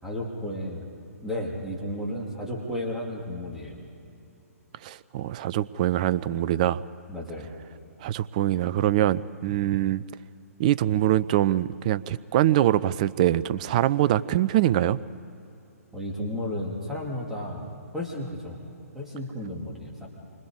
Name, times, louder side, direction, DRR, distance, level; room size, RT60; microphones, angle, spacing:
voice 1, 0.0-0.9 1.2-3.8 7.1-7.5 15.9-17.6 17.9-18.6 18.9-20.1, left 1 dB, 5° right, -3 dB, 2.9 m, -33 dB
voice 2, 4.8-6.8 8.0-10.0 10.6-15.0, right 13 dB, 30° right, 19 dB, 0.5 m, -23 dB
28.5 x 25.5 x 4.9 m, 2.7 s
figure-of-eight pair, 130°, 8 cm